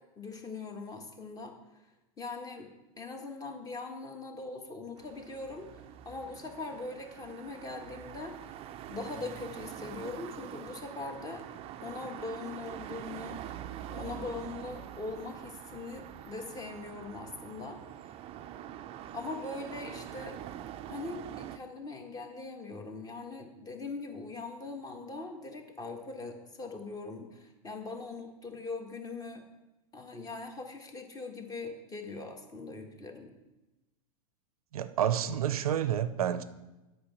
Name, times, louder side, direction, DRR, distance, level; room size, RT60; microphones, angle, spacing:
voice 1, 0.2-1.5 2.2-2.7 3.0-8.5 8.9-11.4 11.8-18.1 19.1-20.4 20.9-29.4 29.9-33.3, left 3 dB, 20° left, 4 dB, 1.5 m, -41 dB
sound 1, 5.0-21.6, right 11 dB, 30° right, 0.5 m, -45 dB
voice 2, 34.7-36.4, right 10 dB, 85° right, 14 dB, 0.6 m, -29 dB
8.6 x 5.5 x 7.1 m, 1.0 s
hypercardioid pair, 115°, 18 cm